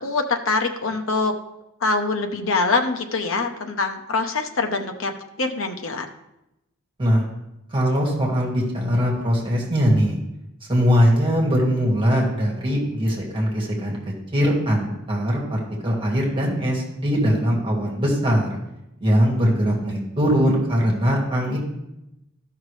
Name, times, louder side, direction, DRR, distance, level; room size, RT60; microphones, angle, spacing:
voice 1, 0.0-1.3 1.8-5.1 5.4-6.1, left 3 dB, 70° left, 5 dB, 0.9 m, -24 dB
voice 2, 7.7-10.2 10.7-18.5 19.0-21.6, equal, 25° right, -2 dB, 2.0 m, -21 dB
13.5 x 5.8 x 3.2 m, 0.90 s
head